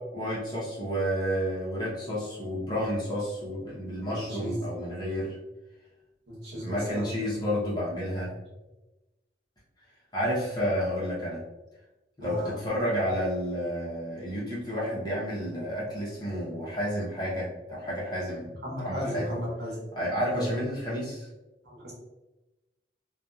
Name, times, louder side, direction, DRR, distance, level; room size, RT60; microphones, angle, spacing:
voice 1, 0.1-5.4 6.6-8.3 10.1-11.4 12.2-18.5 18.8-19.4 20.0-21.3, equal, 25° left, -7 dB, 0.9 m, -30 dB
voice 2, 4.0-4.6 6.3-7.1 8.2-8.3 12.2-12.6 18.6-19.8 20.3-20.6 21.6-21.9, equal, 65° right, -4 dB, 1.0 m, -35 dB
2.8 x 2.3 x 2.4 m, 1.0 s
head